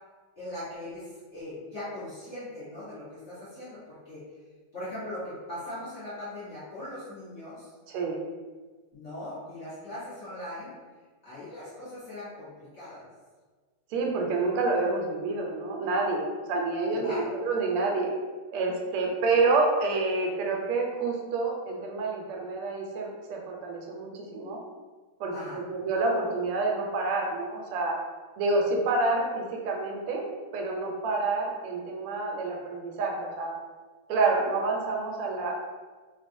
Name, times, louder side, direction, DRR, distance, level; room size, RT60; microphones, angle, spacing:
voice 1, 0.4-4.2 4.7-7.7 8.9-10.7 11.2-13.0 16.9-17.3 25.3-25.6, left 1 dB, 55° left, -11 dB, 0.7 m, -40 dB
voice 2, 7.9-8.2 13.9-16.2 16.5-18.1 18.5-24.6 25.2-25.3 25.7-27.9 28.4-30.2 30.5-33.5 34.1-35.5, right 3 dB, 90° right, 0 dB, 1.5 m, -28 dB
3.4 x 2.2 x 2.5 m, 1.4 s
omnidirectional pair, 2.4 m